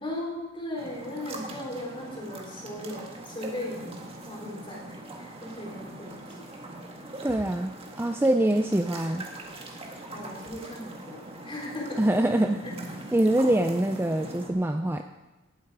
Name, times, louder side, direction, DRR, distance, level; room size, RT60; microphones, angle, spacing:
voice 1, 0.0-3.9 4.2-4.9 5.2-6.4 10.1-12.0, left 1 dB, 25° left, -2 dB, 3.7 m, -37 dB
sound 1, 0.8-14.5, right 2 dB, 30° right, 1.7 m, -42 dB
voice 2, 7.2-9.2 12.0-12.6 13.1-15.0, right 1 dB, 10° right, 6 dB, 0.4 m, -24 dB
18.5 x 7.9 x 4.8 m, 1.1 s
head